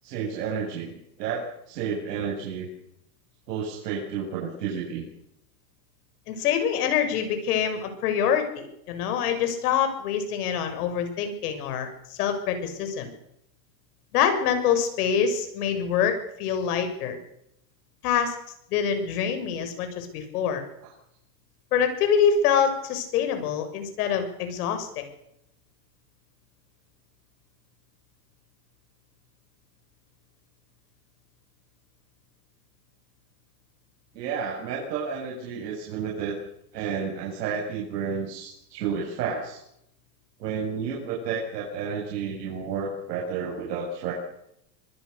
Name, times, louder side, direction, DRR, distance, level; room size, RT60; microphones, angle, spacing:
voice 1, 0.0-2.7 3.5-5.1 20.8-20.9 34.1-36.4 36.7-39.6 40.4-44.1, right 6 dB, 80° right, -2 dB, 7.5 m, -31 dB
voice 2, 6.3-13.1 14.1-17.2 18.0-18.3 18.7-20.6 21.7-25.1, left 7 dB, 65° left, 7 dB, 7.0 m, -25 dB
26.5 x 20.5 x 6.8 m, 0.78 s
supercardioid pair, 150°, 48 cm